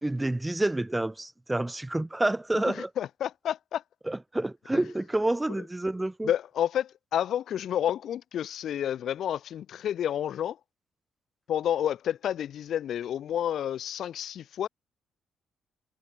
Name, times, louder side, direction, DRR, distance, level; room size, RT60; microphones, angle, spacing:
voice 1, 0.0-2.9 4.1-6.3, right 1 dB, 10° right, 2.4 m, -28 dB
voice 2, 2.5-3.8 4.7-4.9 6.2-10.6 11.5-14.7, left 10 dB, 70° left, 1.7 m, -30 dB
cardioid pair, 90°, 0 cm